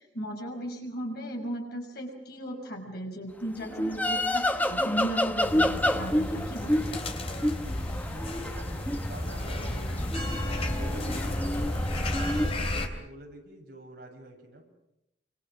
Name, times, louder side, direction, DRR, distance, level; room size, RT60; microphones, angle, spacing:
voice 1, 0.0-6.8, equal, 55° left, 2 dB, 6.1 m, -36 dB
sound 1, 3.6-12.5, left 1 dB, 10° left, 1.2 m, -29 dB
sound 2, 5.4-12.9, left 1 dB, 35° left, 3.1 m, -32 dB
voice 2, 8.0-14.6, right 1 dB, 60° right, 1 dB, 7.8 m, -47 dB
29.0 x 26.0 x 6.5 m, 0.83 s
head